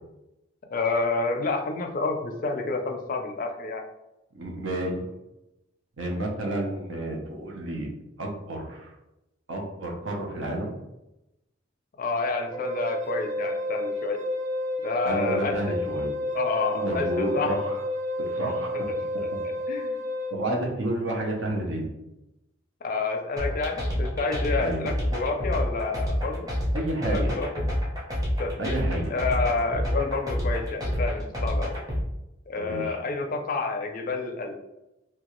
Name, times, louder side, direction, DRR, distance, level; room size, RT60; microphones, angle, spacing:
voice 1, 0.7-3.8 12.0-14.2 14.8-15.8 16.3-17.6 18.3-18.5 18.8-20.0 22.8-26.5 27.0-27.6 28.4-28.8 29.1-31.8 32.5-34.6, left 3 dB, 45° left, 4 dB, 0.4 m, -29 dB
voice 2, 4.3-5.1 6.0-7.9 8.2-8.9 9.5-10.7 15.0-16.1 16.7-17.8 18.2-18.8 20.3-21.9 24.6-24.9 26.7-27.3 28.6-29.1 32.6-33.0, right 1 dB, 70° right, 0 dB, 0.7 m, -30 dB
Wind instrument woodwind instrument, 12.5-20.3, left 1 dB, 40° right, 1.5 m, -30 dB
sound 1, 23.4-32.0, equal, 20° right, 0.7 m, -27 dB
2.9 x 2.3 x 2.9 m, 0.92 s
head